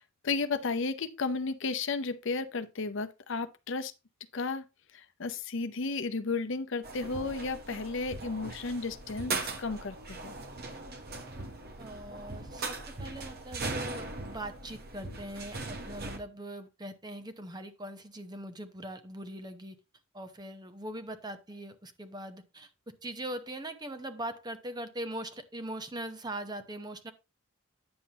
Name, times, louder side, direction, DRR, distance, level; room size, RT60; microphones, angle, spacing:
voice 1, 0.0-3.9 4.3-4.6 4.9-10.4, left 4 dB, 60° left, 0.7 m, -33 dB
sound 1, 6.8-16.2, right 3 dB, 50° right, 1.1 m, -39 dB
voice 2, 11.8-19.8 20.1-22.7 23.0-27.1, right 1 dB, 20° right, 0.8 m, -41 dB
9.7 x 7.1 x 2.9 m
head